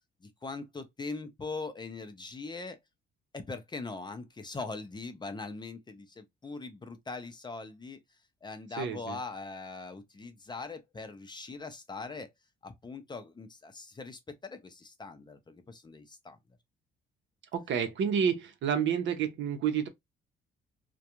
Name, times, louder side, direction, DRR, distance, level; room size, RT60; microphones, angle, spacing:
voice 1, 0.2-2.8 3.3-8.0 8.4-12.3 12.6-16.4, left 3 dB, 20° left, 0.5 m, -41 dB
voice 2, 8.8-9.2 17.5-19.9, right 7 dB, 70° right, 0.7 m, -29 dB
2.3 x 2.2 x 2.8 m
cardioid pair, 90°, 20 cm